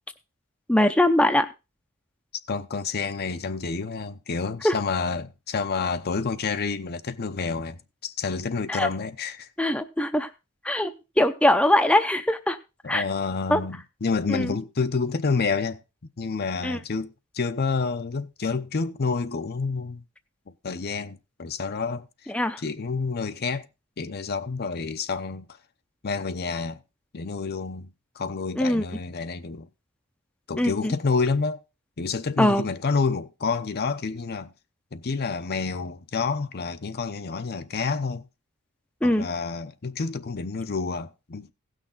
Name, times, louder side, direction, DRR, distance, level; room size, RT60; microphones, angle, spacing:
voice 1, 0.7-1.5 4.6-4.7 8.7-8.9 9.6-10.3 10.6-10.9 11.2-12.6 12.9-13.0 13.5-13.6 14.3-14.5 16.6-16.8 22.3-22.6 28.6-28.9 30.6-30.9 32.4-32.6 39.0-39.3, left 1 dB, 5° left, 0.6 m, -21 dB
voice 2, 2.5-7.8 8.0-9.5 12.8-15.8 16.2-20.0 20.6-22.1 22.6-23.7 24.0-25.4 26.0-26.8 27.1-29.7 30.5-31.6 32.0-34.5 34.9-38.2 39.0-41.5, left 4 dB, 45° left, 0.7 m, -29 dB
16.5 x 6.4 x 3.9 m
head